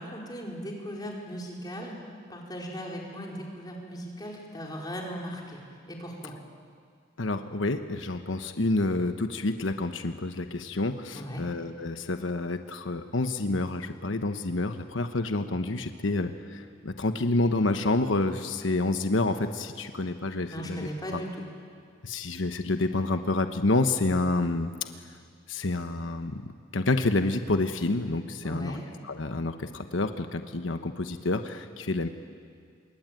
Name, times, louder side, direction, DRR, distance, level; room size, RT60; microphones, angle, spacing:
voice 1, 0.0-2.0 2.3-5.6 5.9-6.3 11.1-11.4 20.5-21.3 28.4-28.8, equal, 20° left, -2 dB, 4.8 m, -38 dB
voice 2, 7.2-21.2 22.0-24.7 25.5-28.8 29.0-32.1, left 2 dB, 85° left, 7 dB, 1.1 m, -28 dB
26.5 x 23.0 x 9.3 m, 2.1 s
head